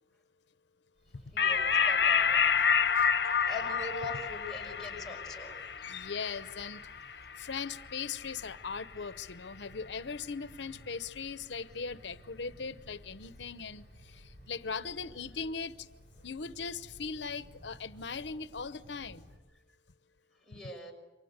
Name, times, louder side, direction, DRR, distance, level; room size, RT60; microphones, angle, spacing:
Wind, 1.0-19.4, equal, 70° right, 7.0 m, -56 dB
voice 1, 1.3-2.9 3.2-6.0 20.5-20.9, left 2 dB, ahead, -2 dB, 5.8 m, -43 dB
sound 1, 1.4-8.2, left 6 dB, 65° left, 1.2 m, -29 dB
voice 2, 5.8-6.8 7.4-15.9 16.2-19.2, left 5 dB, 85° left, 13 dB, 0.8 m, -39 dB
28.5 x 24.5 x 8.1 m, 1.1 s
head